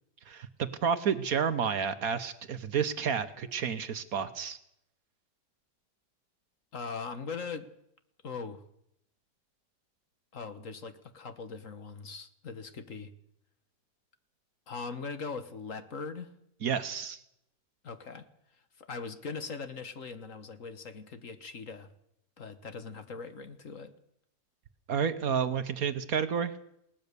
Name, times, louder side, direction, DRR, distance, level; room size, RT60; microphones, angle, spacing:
voice 1, 0.3-4.6 16.6-17.2 24.9-26.5, right 7 dB, 60° right, 12 dB, 1.4 m, -30 dB
voice 2, 6.7-7.7 8.2-8.6 10.3-13.1 14.7-16.3 17.8-18.3 18.8-21.9 22.4-23.9, left 4 dB, 50° left, 10 dB, 1.6 m, -40 dB
20.5 x 18.5 x 6.8 m, 0.77 s
omnidirectional pair, 1.8 m